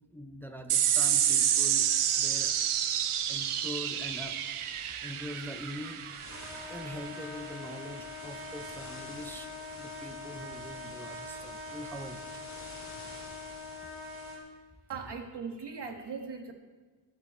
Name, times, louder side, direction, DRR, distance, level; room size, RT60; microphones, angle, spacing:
voice 1, 0.1-1.9 2.1-2.5 3.3-4.4 5.0-6.0 6.7-9.5 9.8-12.5, equal, 5° left, 6 dB, 0.6 m, -43 dB
sound 1, 0.7-7.5, right 10 dB, 80° right, 0.8 m, -29 dB
sound 2, 0.9-14.4, left 2 dB, 35° left, 2.5 m, -51 dB
Trumpet, 6.3-14.5, left 2 dB, 25° right, 2.5 m, -44 dB
voice 2, 14.9-16.5, right 5 dB, 55° right, 4 dB, 1.5 m, -39 dB
22.0 x 8.1 x 4.3 m, 1.4 s
wide cardioid pair, 180°, 49 cm